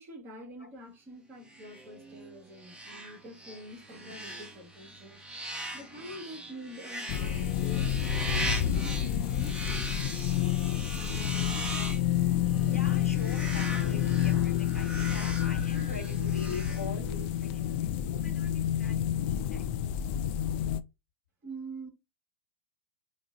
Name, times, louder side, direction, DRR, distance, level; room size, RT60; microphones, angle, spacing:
voice 1, 0.0-5.2 5.7-11.7 21.4-21.9, equal, 30° right, 1.4 m, -46 dB
sound 1, 1.5-17.4, right 1 dB, 10° right, 0.8 m, -40 dB
sound 2, 7.1-20.8, left 11 dB, 45° left, 0.3 m, -29 dB
voice 2, 12.6-19.7, left 3 dB, 90° left, 1.0 m, -43 dB
5.8 x 2.0 x 2.5 m
figure-of-eight pair, 95°, 8 cm